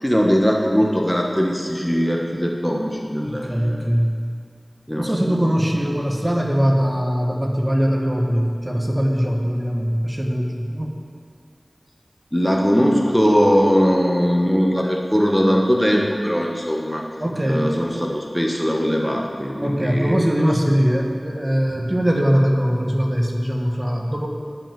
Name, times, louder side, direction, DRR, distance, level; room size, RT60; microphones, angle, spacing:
voice 1, 0.0-3.8 4.9-5.6 12.3-17.0 17.4-20.4, equal, 5° left, 0 dB, 1.3 m, -20 dB
voice 2, 3.2-4.2 5.0-10.9 17.2-17.8 19.6-24.3, equal, 25° right, 1 dB, 1.4 m, -21 dB
11.0 x 5.7 x 7.5 m, 2.3 s
wide cardioid pair, 40°, 0 cm